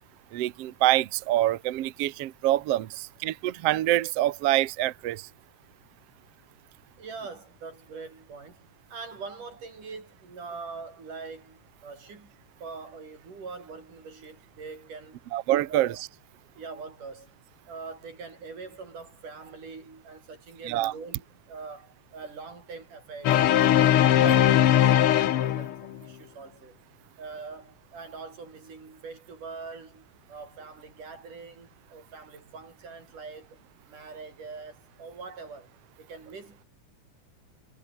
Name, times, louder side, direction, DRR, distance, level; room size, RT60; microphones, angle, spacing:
voice 1, 0.3-5.3 15.3-15.9 20.7-20.9 24.2-24.4, right 14 dB, 65° right, 1.7 m, -26 dB
voice 2, 7.0-12.3 12.6-15.3 15.7-16.0 16.6-17.3 17.7-26.8 27.2-33.6 33.9-35.7 36.0-36.7, right 4 dB, 90° right, 7.6 m, -43 dB
sound 1, 23.2-26.0, left 11 dB, 60° left, 1.6 m, -20 dB
omnidirectional pair, 3.5 m